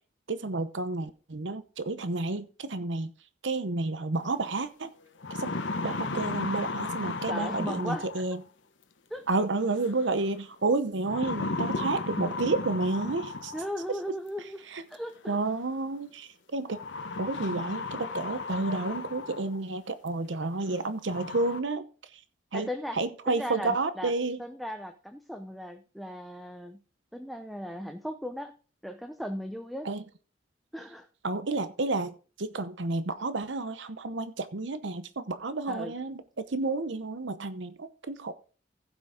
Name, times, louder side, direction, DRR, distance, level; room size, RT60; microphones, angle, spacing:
voice 1, 0.3-3.1 3.4-4.9 5.4-5.5 5.8-8.4 9.3-13.5 14.7-14.8 15.3-16.8 17.2-21.9 22.1-22.2 22.5-22.7 22.9-24.4 29.8-30.0 31.2-38.3, right 3 dB, 70° right, 12 dB, 0.9 m, -30 dB
sound 1, 4.5-4.6 5.0-8.4 9.8-10.2 11.0-13.8 15.1-15.2 16.7-19.6 20.1-20.2 20.7-20.8 21.1-21.6, left 3 dB, 75° left, 1.1 m, -35 dB
voice 2, 7.3-8.1 9.1-9.3 13.5-14.6 14.9-15.4 22.5-23.0 23.3-24.1 24.4-26.8 27.1-28.5 28.8-29.9 30.7-31.1 35.7-35.9, equal, ahead, 5 dB, 0.6 m, -37 dB
15.5 x 6.1 x 3.7 m, 0.37 s
head